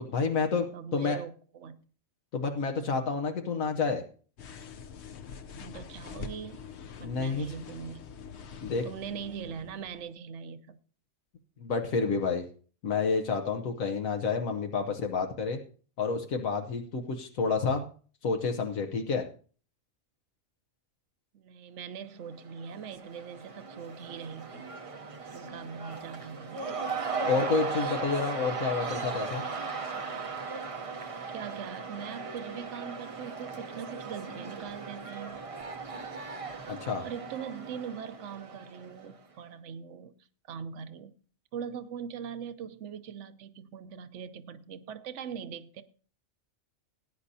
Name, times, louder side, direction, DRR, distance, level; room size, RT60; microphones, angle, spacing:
voice 1, 0.0-0.7 0.9-1.2 2.3-4.0 7.0-7.5 8.6-8.8 11.6-12.4 12.8-15.6 16.0-17.8 18.2-19.2 27.3-29.4 36.7-37.0, left 4 dB, 80° left, 1.4 m, -29 dB
voice 2, 0.7-1.8 5.6-6.7 7.0-8.0 8.8-10.8 21.3-24.7 25.3-26.9 31.3-35.4 37.0-40.1 40.5-41.1 41.5-45.8, right 7 dB, 65° right, 1.1 m, -41 dB
sound 1, 4.4-10.1, left 6 dB, 60° left, 0.9 m, -45 dB
Cheering / Crowd, 22.3-39.2, right 4 dB, 35° right, 0.7 m, -38 dB
19.5 x 9.9 x 2.7 m
omnidirectional pair, 1.4 m